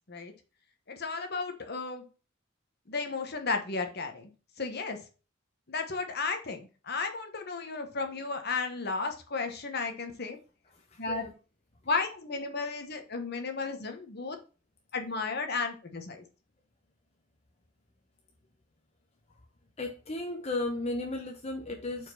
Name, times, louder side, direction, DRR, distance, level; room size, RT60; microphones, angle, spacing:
voice 1, 0.9-2.0 2.9-4.3 4.6-5.0 5.7-10.4 11.0-11.2 11.9-14.4 14.9-16.2, left 4 dB, 50° left, 6 dB, 1.1 m, -33 dB
voice 2, 10.7-11.3 19.8-22.1, left 2 dB, 30° left, 2 dB, 0.8 m, -35 dB
4.7 x 4.5 x 5.8 m, 0.35 s
head